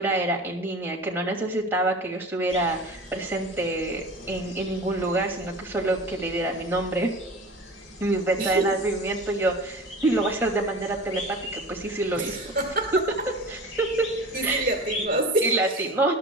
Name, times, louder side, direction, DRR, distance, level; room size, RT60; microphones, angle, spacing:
voice 1, 0.0-7.1 8.0-12.4 13.5-14.1 14.4-14.6 15.4-16.1, right 2 dB, 10° right, -2 dB, 2.4 m, -26 dB
sound 1, 2.5-15.1, left 2 dB, 90° left, 4.0 m, -40 dB
voice 2, 8.4-8.7 12.2-13.3 14.3-15.9, right 2 dB, 45° right, 3 dB, 2.0 m, -27 dB
20.0 x 12.5 x 2.3 m, 0.79 s
head